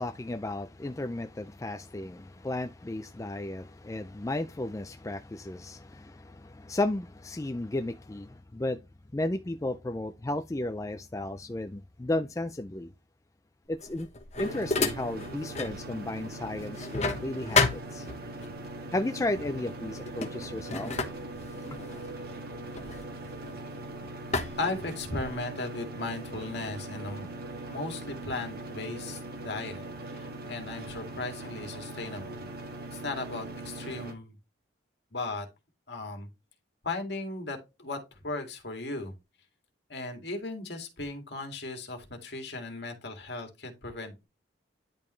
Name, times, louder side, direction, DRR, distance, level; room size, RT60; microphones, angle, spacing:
voice 1, 0.0-8.8 9.1-12.9 13.7-14.1 14.4-18.1 18.9-20.9, left 1 dB, 15° left, 0.4 m, -34 dB
sound 1, 13.8-15.8 16.2-18.5 19.4-19.6 19.9-23.8 24.3-25.5, left 4 dB, 35° left, 1.1 m, -32 dB
sound 2, 14.4-34.1, right 2 dB, 50° right, 1.6 m, -41 dB
voice 2, 24.6-27.3 27.7-32.4 32.9-34.4 35.1-35.5 35.9-36.3 36.8-39.1 39.9-44.2, left 2 dB, 60° left, 2.3 m, -36 dB
10.5 x 5.3 x 3.2 m
head